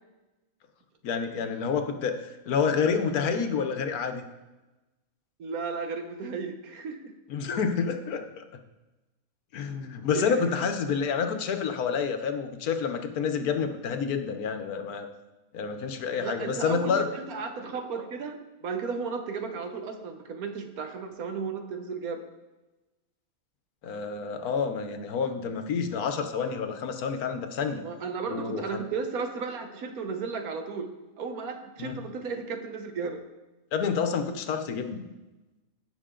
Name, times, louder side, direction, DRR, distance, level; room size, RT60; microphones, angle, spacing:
voice 1, 1.0-4.2 7.3-8.4 9.5-15.1 15.5-17.1 23.8-27.8 28.3-28.8 31.8-32.0 33.7-35.0, left 6 dB, 85° left, 7 dB, 1.4 m, -28 dB
voice 2, 5.4-7.1 10.1-10.5 16.2-22.2 27.8-30.9 31.2-33.2, right 5 dB, 80° right, 6 dB, 1.5 m, -34 dB
17.0 x 5.9 x 3.8 m, 1.1 s
omnidirectional pair, 1.5 m